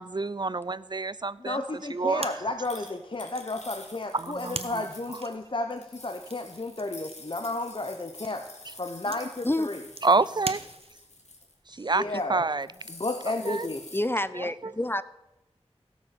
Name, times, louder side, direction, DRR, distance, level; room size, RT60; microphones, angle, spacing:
voice 1, 0.0-1.6 1.9-2.3 4.1-4.8 10.0-10.6 11.8-12.0 12.3-12.7 13.4-13.7 14.4-14.7, right 3 dB, 40° right, 18 dB, 0.5 m, -27 dB
voice 2, 1.4-8.4 8.8-9.8 11.9-12.4 12.9-13.8, left 2 dB, 50° left, 6 dB, 0.9 m, -32 dB
sound 1, 2.2-11.2, right 3 dB, 60° right, 0.9 m, -43 dB
sound 2, 2.6-5.3 5.7-11.5 12.0-12.2 12.5-14.0, left 2 dB, 85° left, 2.4 m, -47 dB
voice 3, 13.9-15.0, left 1 dB, 20° left, 15 dB, 0.5 m, -28 dB
16.5 x 7.2 x 6.8 m, 0.94 s
wide cardioid pair, 60°, 11 cm